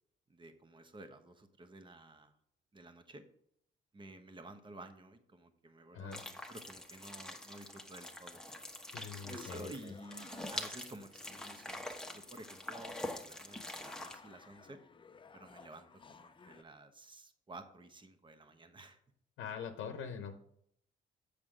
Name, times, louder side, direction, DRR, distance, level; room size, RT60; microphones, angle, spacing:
voice 1, 0.3-2.3 2.7-3.2 3.9-8.4 9.3-14.8 15.3-19.0, right 2 dB, 25° right, 8 dB, 1.0 m, -52 dB
sound 1, 6.1-14.1, left 1 dB, 5° left, 1.1 m, -45 dB
voice 2, 8.9-9.9 19.4-20.3, left 7 dB, 80° left, 5 dB, 0.8 m, -43 dB
sound 2, 9.3-16.6, left 5 dB, 25° left, 0.5 m, -58 dB
7.3 x 6.6 x 3.6 m, 0.68 s
cardioid pair, 90°, 20 cm